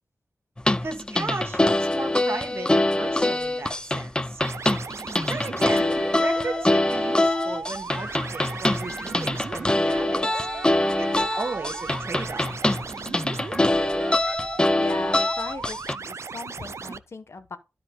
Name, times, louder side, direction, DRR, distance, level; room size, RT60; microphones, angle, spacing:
sound 1, 0.6-15.9, left 1 dB, 15° left, 0.5 m, -24 dB
voice 1, 0.8-4.4 5.3-10.5 11.0-12.5, right 3 dB, 50° right, 1.5 m, -35 dB
sound 2, 4.4-17.0, right 5 dB, 65° right, 0.5 m, -37 dB
sound 3, 5.7-7.5 7.9-12.8 13.3-14.4, right 1 dB, 10° right, 1.2 m, -43 dB
voice 2, 14.8-17.6, left 3 dB, 60° left, 1.1 m, -38 dB
12.0 x 4.7 x 3.7 m
wide cardioid pair, 75°, 5 cm